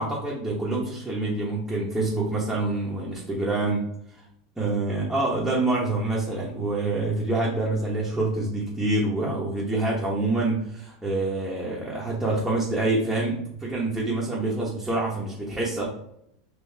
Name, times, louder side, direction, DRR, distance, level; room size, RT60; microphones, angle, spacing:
voice 1, 0.0-3.9 4.6-15.8, right 2 dB, 5° right, -6 dB, 1.0 m, -26 dB
3.7 x 2.6 x 2.7 m, 0.74 s
supercardioid pair, 115°, 2 cm